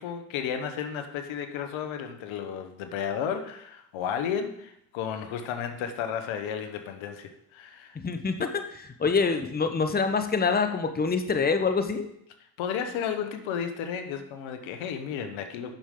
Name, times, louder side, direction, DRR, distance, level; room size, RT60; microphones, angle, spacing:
voice 1, 0.0-8.0 12.6-15.8, left 8 dB, 75° left, 7 dB, 1.1 m, -33 dB
voice 2, 8.0-12.1, left 5 dB, 20° left, 8 dB, 0.9 m, -26 dB
9.1 x 6.3 x 3.8 m, 0.77 s
supercardioid pair, 65°, 47 cm